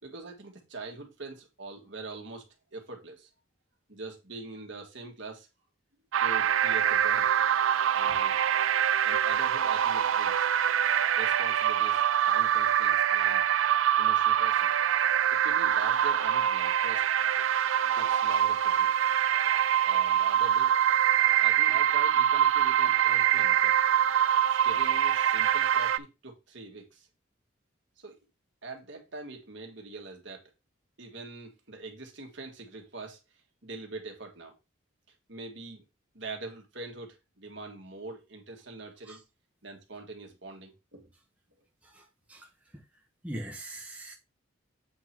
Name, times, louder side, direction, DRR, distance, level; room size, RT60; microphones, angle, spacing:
voice 1, 0.0-2.5 2.7-3.3 3.9-5.5 6.1-7.6 7.9-8.4 9.0-10.5 11.2-13.5 14.0-14.7 15.3-17.1 18.0-19.0 19.8-20.7 21.4-23.7 24.6-27.1 28.0-28.2 28.6-30.4 31.0-33.2 33.6-34.5 35.3-35.8 36.1-39.2 39.6-41.1, right 3 dB, 65° right, 1.8 m, -43 dB
sound 1, 6.1-26.0, right 10 dB, 80° right, 0.4 m, -24 dB
voice 2, 41.8-42.8 43.2-44.1, right 1 dB, 5° right, 1.1 m, -42 dB
8.0 x 3.8 x 4.5 m
head